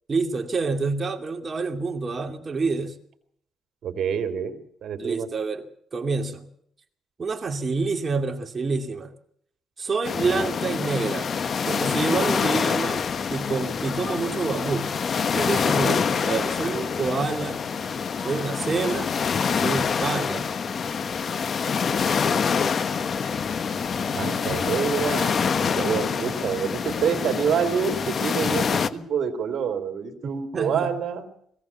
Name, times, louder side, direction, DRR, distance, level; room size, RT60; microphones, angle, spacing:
voice 1, 0.1-2.9 5.0-6.5 7.2-9.1 9.8-11.3 11.7-13.0 13.3-15.0 15.3-17.6 18.2-19.1 19.5-20.5 30.2-30.9, right 4 dB, 35° right, 2.6 m, -27 dB
voice 2, 3.8-5.3 10.3-10.4 24.1-31.3, right 7 dB, 65° right, 3.4 m, -27 dB
sound 1, 10.0-28.9, left 6 dB, 50° left, 1.2 m, -26 dB
21.5 x 17.0 x 7.2 m
cardioid pair, 90°, 0 cm